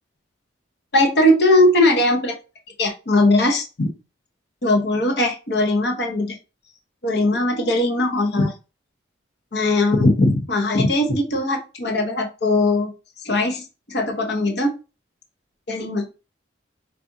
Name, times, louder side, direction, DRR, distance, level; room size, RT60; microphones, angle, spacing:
voice 1, 0.9-2.3 2.8-3.9 4.6-6.3 7.0-8.5 9.5-12.9 13.2-13.6 13.9-14.8 15.7-16.1, left 1 dB, 60° left, 2 dB, 0.8 m, -19 dB
4.7 x 2.5 x 2.6 m, 0.31 s
head